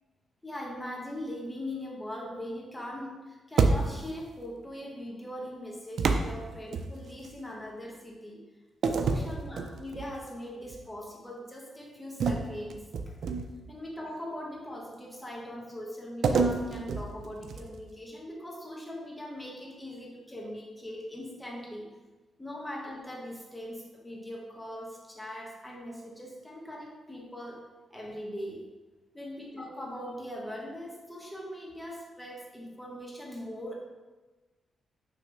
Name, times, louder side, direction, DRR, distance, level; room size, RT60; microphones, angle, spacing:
voice 1, 0.4-8.4 8.8-13.1 13.7-21.9 22.4-27.6 27.9-28.6 29.1-33.8, left 1 dB, 10° left, -3 dB, 1.2 m, -41 dB
sound 1, 3.6-4.2 6.0-7.3 8.8-10.2 10.6-10.9 12.2-13.7 16.2-17.9, right 4 dB, 70° right, 0.5 m, -28 dB
6.2 x 3.2 x 5.2 m, 1.2 s
cardioid pair, 110°, 0 cm